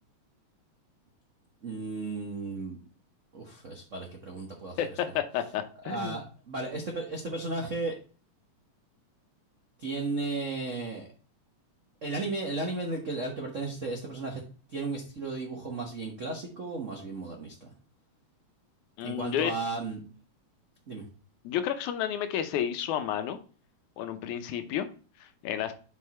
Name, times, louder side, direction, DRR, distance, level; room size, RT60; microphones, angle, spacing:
voice 1, 1.6-2.8 3.3-4.8 5.8-8.0 9.8-11.1 12.0-14.4 14.7-17.7 19.0-20.0 20.9-21.0, right 3 dB, 85° right, 1 dB, 0.6 m, -34 dB
voice 2, 4.8-6.2 19.0-19.5 21.4-23.4 24.0-24.9 25.2-25.7, left 10 dB, 90° left, 9 dB, 2.2 m, -31 dB
6.7 x 4.6 x 4.2 m, 0.39 s
omnidirectional pair, 3.3 m